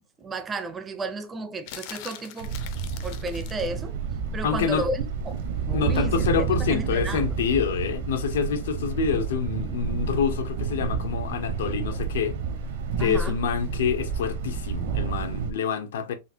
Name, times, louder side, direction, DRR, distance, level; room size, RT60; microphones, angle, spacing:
voice 1, 0.2-2.6 3.0-4.0 4.3-6.3 6.6-7.3 13.0-13.4, right 2 dB, 15° right, 0.4 m, -33 dB
sound 1, 1.7-3.7 6.2-6.4, left 11 dB, 45° left, 0.5 m, -42 dB
Thunder, 2.4-15.5, right 5 dB, 60° right, 0.7 m, -30 dB
voice 2, 4.4-4.8 5.7-12.4 13.0-16.1, left 6 dB, 80° left, 0.7 m, -27 dB
3.9 x 2.4 x 2.7 m
supercardioid pair, 165°, 0 cm